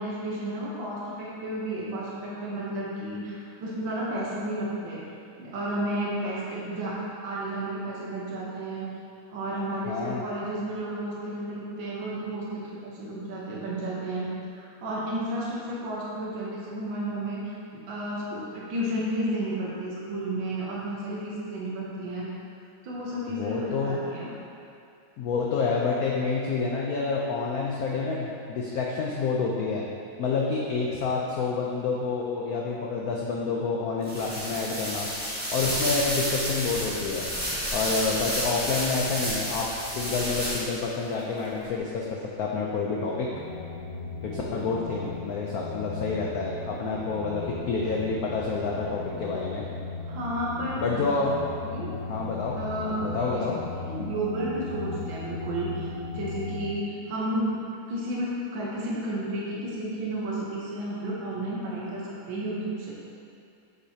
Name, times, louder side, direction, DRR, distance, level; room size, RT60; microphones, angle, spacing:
voice 1, 0.0-5.0 5.4-7.0 7.2-8.9 9.3-22.3 22.8-24.3 50.1-51.1 51.7-51.9 52.6-53.0 53.4-53.5 53.8-55.9 56.1-57.6 57.9-62.9, right 1 dB, 70° right, -6 dB, 1.8 m, -32 dB
voice 2, 9.9-10.2 23.3-24.0 25.2-29.8 30.2-35.1 35.5-37.3 37.7-42.1 42.4-43.3 44.2-49.6 50.8-51.5 52.1-52.6 53.0-53.6, left 4 dB, 75° left, -2 dB, 0.8 m, -28 dB
sound 1, 34.0-40.9, equal, 5° right, 1.2 m, -30 dB
sound 2, 43.3-56.7, left 3 dB, 25° right, 0.7 m, -37 dB
8.0 x 6.3 x 2.8 m, 2.5 s
omnidirectional pair, 2.2 m